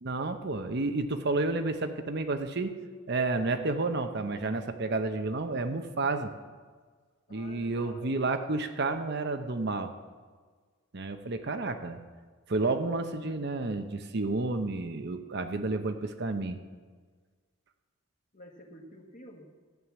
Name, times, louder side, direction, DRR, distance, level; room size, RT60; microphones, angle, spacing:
voice 1, 0.0-2.7 3.1-6.3 7.3-9.9 10.9-12.0 12.5-16.6, right 3 dB, 50° right, 8 dB, 0.8 m, -31 dB
voice 2, 7.3-8.2 18.3-19.5, left 1 dB, 40° left, 2 dB, 1.6 m, -50 dB
13.0 x 9.1 x 7.1 m, 1.5 s
head